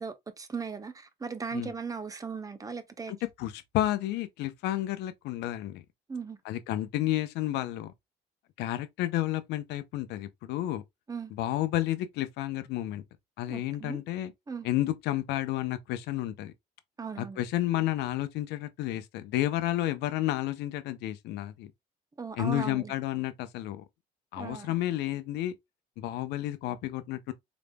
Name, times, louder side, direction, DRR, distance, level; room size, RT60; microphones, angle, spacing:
voice 1, 0.0-3.1 6.1-6.4 11.1-11.3 13.5-14.0 14.5-14.7 17.0-17.4 22.2-22.9 24.4-24.7, right 5 dB, 20° right, 0.7 m, -37 dB
voice 2, 3.1-5.8 6.4-7.9 8.6-10.8 11.3-13.0 13.4-14.3 14.6-16.5 17.2-21.7 22.4-23.8 24.3-25.5 26.0-27.3, left 14 dB, 85° left, 0.6 m, -31 dB
3.9 x 3.5 x 2.2 m
cardioid pair, 110°, 17 cm